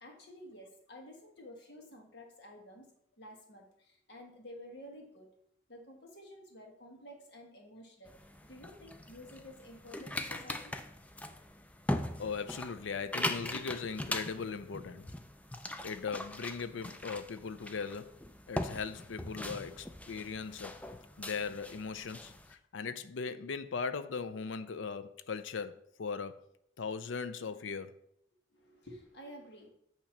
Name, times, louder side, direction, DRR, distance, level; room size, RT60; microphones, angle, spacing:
voice 1, 0.0-2.9 3.2-5.3 5.7-8.1 8.4-10.8 28.5-29.7, left 1 dB, 60° left, 1.4 m, -51 dB
sound 1, 8.1-22.5, left 1 dB, 5° left, 0.3 m, -41 dB
voice 2, 12.2-15.1 15.8-18.1 18.5-20.8 21.2-26.4 26.8-27.9, left 5 dB, 80° left, 0.5 m, -39 dB
8.8 x 3.0 x 5.8 m
head